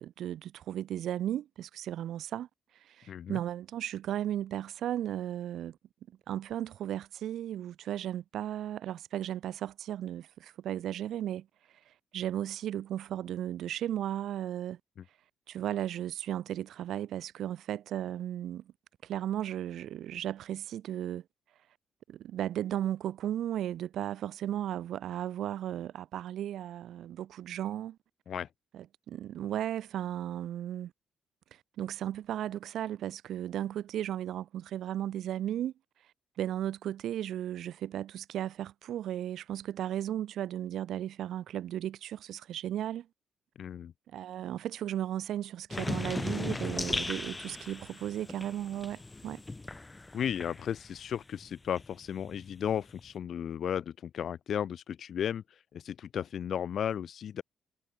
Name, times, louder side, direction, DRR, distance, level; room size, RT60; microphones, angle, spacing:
voice 1, 0.0-2.5 2.9-5.8 6.3-11.5 12.1-14.8 15.5-18.6 19.0-21.2 22.1-28.0 28.7-30.9 31.8-35.7 36.4-43.1 44.1-49.4, right 11 dB, 75° right, 3.4 m, -35 dB
voice 2, 3.1-3.4 28.3-28.5 43.6-43.9 50.1-57.4, left 9 dB, 60° left, 4.6 m, -34 dB
sound 1, 45.7-51.1 51.4-53.1, left 2 dB, 20° left, 2.5 m, -38 dB
cardioid pair, 90°, 0 cm